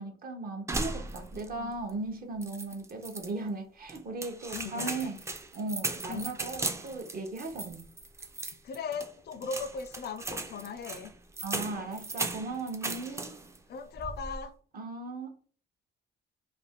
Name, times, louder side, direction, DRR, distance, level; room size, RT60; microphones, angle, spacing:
voice 1, 0.0-5.2 5.5-7.8 11.4-13.3 14.7-15.4, right 3 dB, 50° right, 0.7 m, -37 dB
sound 1, 0.7-1.6 1.9-2.0 2.4-3.3 3.9-13.6 13.9-14.4, right 2 dB, 15° right, 0.4 m, -37 dB
voice 2, 1.3-1.8 4.5-5.1 6.1-6.2 8.6-11.1 13.7-14.5, left 5 dB, 55° left, 0.4 m, -38 dB
2.5 x 2.2 x 3.4 m
cardioid pair, 90°, 20 cm